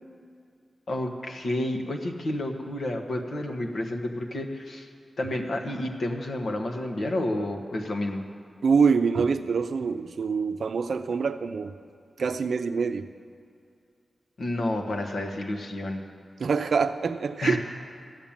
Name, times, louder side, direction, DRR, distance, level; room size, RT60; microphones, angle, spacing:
voice 1, 0.9-4.9 5.2-8.2 14.4-16.0 17.4-17.6, left 1 dB, 70° left, 2 dB, 1.3 m, -30 dB
voice 2, 8.6-11.7 12.2-13.1 16.4-17.6, right 5 dB, 70° right, 10 dB, 0.6 m, -25 dB
13.5 x 7.2 x 8.9 m, 2.3 s
wide cardioid pair, 125°, 0 cm